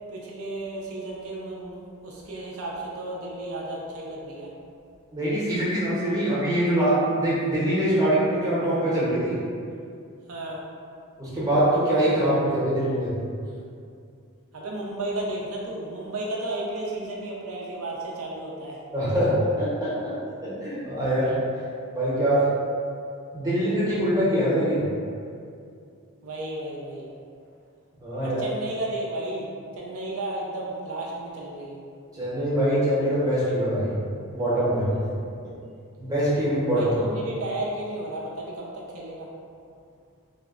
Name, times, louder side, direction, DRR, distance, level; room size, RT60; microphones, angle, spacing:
voice 1, 0.1-4.5 10.3-10.6 14.5-18.8 26.2-27.1 28.2-31.8 36.7-39.3, right 1 dB, 70° right, -3 dB, 0.5 m, -33 dB
voice 2, 5.1-9.4 11.2-13.1 18.9-20.2 20.4-21.3 21.9-22.5 23.3-24.8 28.0-28.4 32.1-33.9 34.3-34.9 36.0-36.9, right 1 dB, 15° right, -10 dB, 0.8 m, -23 dB
3.4 x 2.1 x 2.4 m, 2.4 s
head